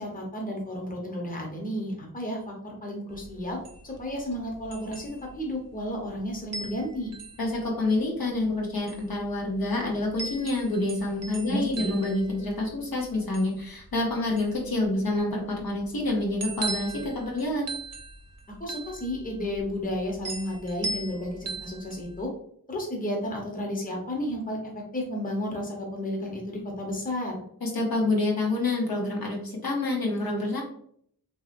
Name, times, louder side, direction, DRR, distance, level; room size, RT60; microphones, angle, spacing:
voice 1, 0.0-3.6 3.8-7.1 11.4-11.9 18.6-22.3 22.7-27.4, left 1 dB, 25° left, -1 dB, 0.8 m, -32 dB
sound 1, 3.1-22.2, right 3 dB, 45° right, 0.5 m, -40 dB
voice 2, 7.4-17.7 27.6-30.6, left 2 dB, 75° left, -2 dB, 0.9 m, -27 dB
2.9 x 2.7 x 2.5 m, 0.65 s
wide cardioid pair, 70°, 36 cm